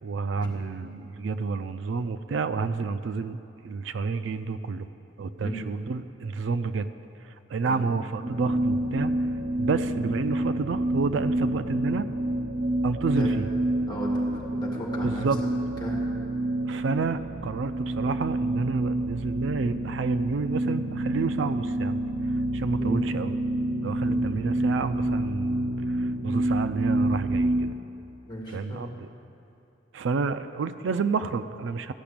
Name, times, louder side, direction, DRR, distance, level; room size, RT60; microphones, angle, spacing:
voice 1, 0.0-3.4 3.6-4.9 5.2-6.9 7.2-9.3 9.6-12.1 12.8-13.5 15.0-15.4 16.6-22.0 22.5-23.3 23.8-27.7 28.5-29.1 29.9-31.9, right 4 dB, 80° right, 12 dB, 0.4 m, -30 dB
sound 1, 8.2-27.7, right 1 dB, 60° right, 0.7 m, -28 dB
voice 2, 13.1-15.3 15.8-16.0 22.8-23.0 24.0-24.2 28.3-28.9, equal, 20° left, -3 dB, 2.1 m, -36 dB
14.0 x 5.9 x 8.7 m, 2.8 s
head